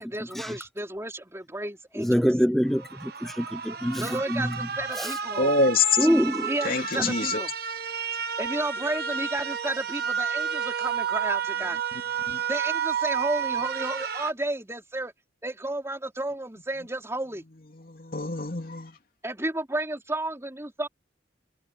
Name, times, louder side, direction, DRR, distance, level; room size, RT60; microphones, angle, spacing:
voice 1, 0.0-2.3 4.0-5.5 6.5-7.5 8.4-11.8 12.5-15.1 15.4-17.4 19.2-20.9, right 1 dB, 15° right, 4.1 m, -32 dB
voice 2, 2.0-4.5 5.0-5.1 6.0-6.5 7.0-7.1, equal, ahead, 0.6 m, -25 dB
sound 1, 2.7-14.3, right 7 dB, 55° right, 1.3 m, -31 dB
voice 3, 5.4-5.8 6.6-7.4 12.3-12.4 17.7-19.0, left 3 dB, 50° left, 2.8 m, -26 dB
head